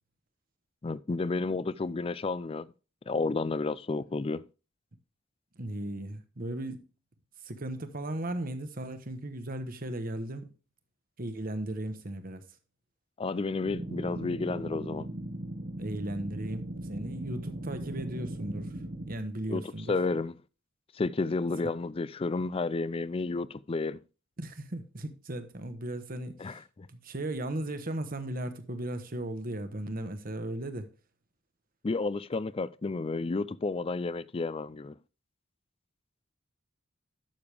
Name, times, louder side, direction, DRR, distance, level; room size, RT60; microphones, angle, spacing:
voice 1, 0.8-2.7 3.1-4.4 13.2-15.1 19.5-20.3 21.0-24.0 26.4-26.9 31.8-34.9, left 3 dB, 30° left, 0.4 m, -31 dB
voice 2, 5.6-6.8 7.4-10.5 11.2-12.4 15.8-18.7 19.1-19.9 24.4-26.6 26.9-30.9, right 1 dB, 45° right, 1.2 m, -36 dB
sound 1, 13.7-19.1, right 1 dB, 75° right, 1.9 m, -38 dB
12.0 x 6.7 x 3.4 m
head